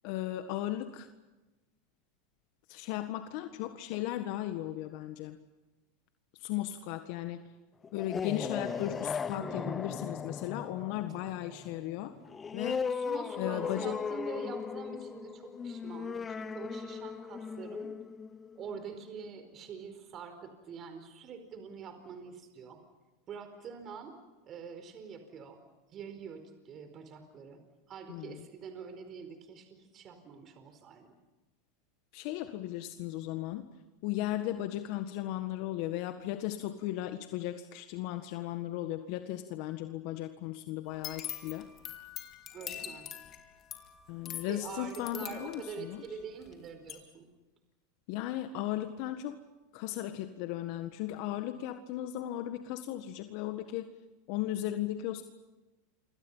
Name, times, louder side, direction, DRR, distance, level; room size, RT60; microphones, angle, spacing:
voice 1, 0.0-1.1 2.7-5.4 6.4-7.4 7.9-12.1 12.5-12.8 13.4-14.0 28.1-28.4 32.1-33.7 34.0-41.7 44.1-46.0 48.1-49.4 49.7-53.9 54.3-55.2, left 13 dB, 60° left, 8 dB, 1.6 m, -36 dB
sound 1, 7.8-19.1, left 6 dB, 25° left, 0.8 m, -38 dB
voice 2, 9.3-10.2 12.9-17.9 18.5-22.8 23.3-24.1 24.4-25.6 25.9-27.6 27.9-31.1 42.5-43.1 44.5-47.3, right 6 dB, 40° right, 8 dB, 4.6 m, -45 dB
sound 2, 40.9-46.5 46.9-47.0, left 10 dB, 40° left, 3.9 m, -43 dB
29.5 x 26.0 x 5.7 m, 1.1 s
hypercardioid pair, 100°, 0 cm